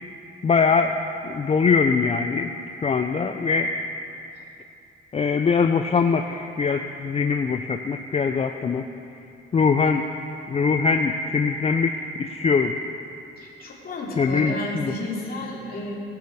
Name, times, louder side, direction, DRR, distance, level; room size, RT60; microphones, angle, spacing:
voice 1, 0.4-1.0 1.2-3.7 5.1-8.8 9.5-10.0 10.5-12.7 14.2-14.9, left 5 dB, 30° left, 6 dB, 0.5 m, -22 dB
voice 2, 13.4-15.9, left 1 dB, 50° left, -4 dB, 2.9 m, -32 dB
18.5 x 6.8 x 4.8 m, 2.7 s
cardioid pair, 90°, 20 cm